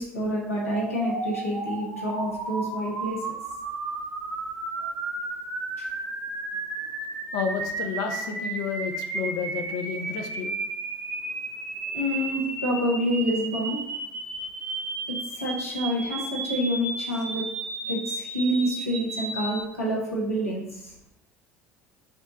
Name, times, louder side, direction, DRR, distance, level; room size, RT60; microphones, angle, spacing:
voice 1, 0.0-3.4 5.8-5.9 11.9-13.8 15.1-17.4 17.9-20.9, equal, 85° left, -5 dB, 1.1 m, -28 dB
sound 1, 0.6-19.6, right 3 dB, 45° right, 1.1 m, -33 dB
voice 2, 7.3-10.5, left 6 dB, 55° left, 4 dB, 0.6 m, -31 dB
4.3 x 2.3 x 3.9 m, 0.88 s
figure-of-eight pair, 65°, 7 cm